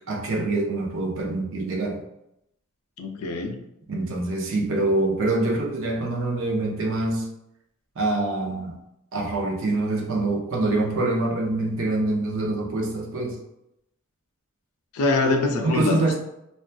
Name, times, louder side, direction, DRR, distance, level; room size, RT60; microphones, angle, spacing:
voice 1, 0.1-2.0 3.9-7.3 8.0-8.8 9.1-13.4 15.6-16.2, right 2 dB, 60° right, 0 dB, 0.5 m, -25 dB
voice 2, 3.0-3.6 14.9-16.2, left 3 dB, 80° left, 4 dB, 0.4 m, -24 dB
2.4 x 2.3 x 2.2 m, 0.82 s
head